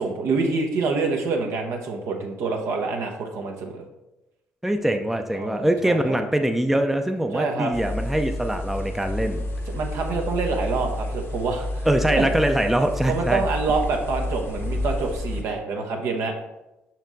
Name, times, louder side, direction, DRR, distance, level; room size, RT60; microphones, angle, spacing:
voice 1, 0.0-3.8 5.3-6.2 7.3-7.7 9.7-12.2 13.1-16.3, right 4 dB, 65° right, 2 dB, 1.0 m, -26 dB
voice 2, 4.6-9.4 11.9-13.4, right 1 dB, 5° right, 5 dB, 0.6 m, -23 dB
sound 1, 7.7-15.4, left 1 dB, 50° left, 1.0 m, -30 dB
6.0 x 4.4 x 4.0 m, 0.96 s
hypercardioid pair, 50°, 5 cm